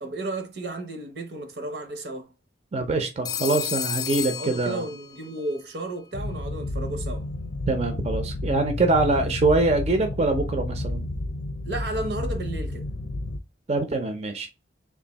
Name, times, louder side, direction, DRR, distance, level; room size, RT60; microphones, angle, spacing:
voice 1, 0.0-2.3 4.3-7.3 9.0-9.3 11.6-12.9, right 2 dB, 70° right, 0.8 m, -33 dB
voice 2, 2.7-4.8 7.7-11.1 13.7-14.5, right 2 dB, 40° right, 0.5 m, -24 dB
Telephone, 3.2-5.3, left 8 dB, 20° left, 0.3 m, -31 dB
sound 1, 6.1-13.4, left 2 dB, 75° left, 0.5 m, -31 dB
3.5 x 2.5 x 3.9 m
head